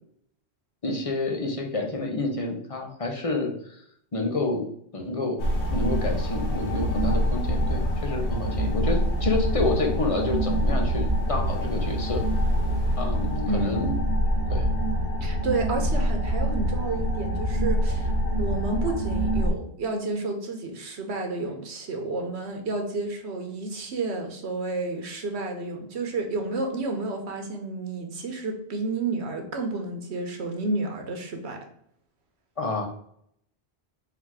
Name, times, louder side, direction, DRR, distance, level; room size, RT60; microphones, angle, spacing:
voice 1, 0.8-3.8 4.1-4.7 4.9-5.4 5.7-12.2 13.0-13.9 14.5-14.7 32.6-32.9, left 2 dB, 35° left, 2 dB, 0.8 m, -29 dB
sound 1, 5.4-19.5, equal, 85° left, 1.2 m, -25 dB
voice 2, 13.5-13.8 15.2-31.6, right 3 dB, 80° right, 4 dB, 1.2 m, -31 dB
4.0 x 2.9 x 4.6 m, 0.70 s
omnidirectional pair, 1.1 m